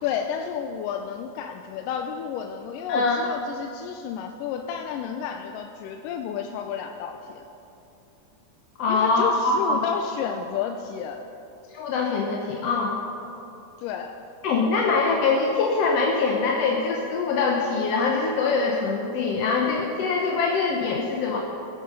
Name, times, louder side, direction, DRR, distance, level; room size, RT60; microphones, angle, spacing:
voice 1, 0.0-7.4 8.9-11.2 13.8-14.1, left 8 dB, 85° left, 4 dB, 2.2 m, -31 dB
voice 2, 2.9-3.2 8.8-9.8 11.7-13.0 14.4-21.4, left 4 dB, 65° left, -1 dB, 1.6 m, -23 dB
18.5 x 8.7 x 5.3 m, 2.8 s
omnidirectional pair, 3.9 m